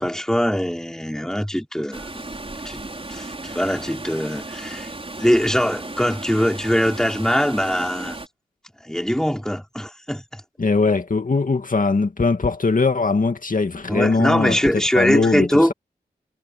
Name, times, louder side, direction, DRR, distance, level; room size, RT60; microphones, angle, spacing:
voice 1, 0.0-2.1 2.6-2.8 3.1-4.9 5.2-8.2 8.8-10.4 13.9-15.7, equal, 5° left, 4.8 m, -22 dB
Water, 1.9-8.3, right 2 dB, 35° right, 5.4 m, -35 dB
voice 2, 10.6-14.6 14.9-15.7, left 4 dB, 50° left, 2.3 m, -20 dB
cardioid pair, 45°, 17 cm